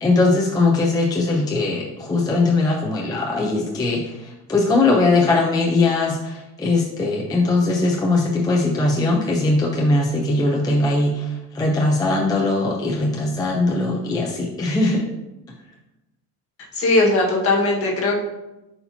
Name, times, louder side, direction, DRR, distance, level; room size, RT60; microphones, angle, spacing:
voice 1, 0.0-11.3 11.5-15.0, left 2 dB, 10° left, -2 dB, 0.5 m, -20 dB
voice 2, 16.7-18.2, left 2 dB, 40° left, -1 dB, 1.5 m, -19 dB
8.2 x 4.3 x 2.7 m, 0.99 s
cardioid pair, 150°, 36 cm